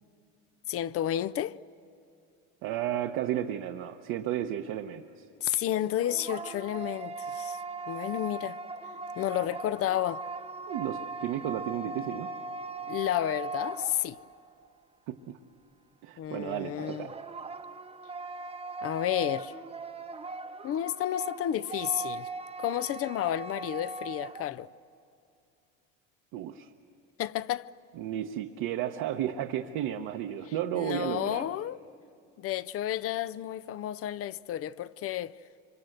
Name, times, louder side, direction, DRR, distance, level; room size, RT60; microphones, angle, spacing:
voice 1, 0.7-1.6 5.4-7.6 7.9-8.6 9.2-10.2 12.9-14.2 16.2-17.1 18.8-19.5 20.6-22.3 22.6-24.7 27.2-27.7 30.7-31.8 32.4-35.4, left 12 dB, 40° left, 0.5 m, -31 dB
voice 2, 2.6-5.0 10.7-12.3 15.1-15.2 16.0-17.1 26.3-26.7 28.0-31.4, right 11 dB, 65° right, 1.1 m, -33 dB
sound 1, 5.7-14.5 16.8-24.5, right 3 dB, 15° right, 0.9 m, -39 dB
26.0 x 25.5 x 7.9 m
supercardioid pair, 115°, 36 cm